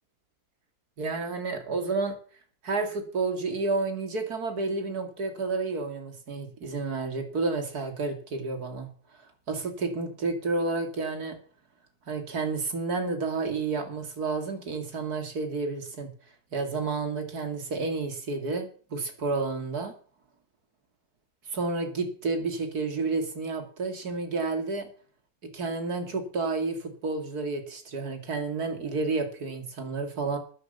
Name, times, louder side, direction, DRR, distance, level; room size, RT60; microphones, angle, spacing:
voice 1, 1.0-2.2 2.6-8.9 9.5-11.4 12.1-16.1 16.5-19.9 21.5-24.9 25.4-30.4, right 3 dB, 85° right, 6 dB, 2.9 m, -30 dB
12.5 x 10.5 x 6.8 m, 0.43 s
omnidirectional pair, 1.6 m